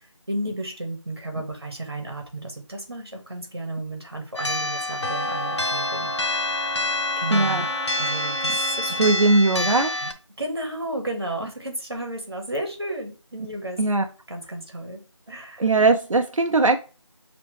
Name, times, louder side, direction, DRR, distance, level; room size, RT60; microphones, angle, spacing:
voice 1, 0.0-7.7 8.0-9.0 9.6-9.7 10.0-10.1 10.4-13.8 14.3-15.0 15.3-15.7, right 1 dB, 50° right, 1.2 m, -33 dB
sound 1, 4.4-10.1, left 2 dB, 60° left, 0.6 m, -27 dB
Wind instrument woodwind instrument, 5.0-9.3, left 1 dB, 20° right, 1.1 m, -33 dB
voice 2, 7.3-7.6 9.0-10.0 13.8-14.1 15.6-16.8, right 3 dB, 90° right, 0.5 m, -19 dB
5.1 x 2.9 x 3.4 m
figure-of-eight pair, 175°, 16 cm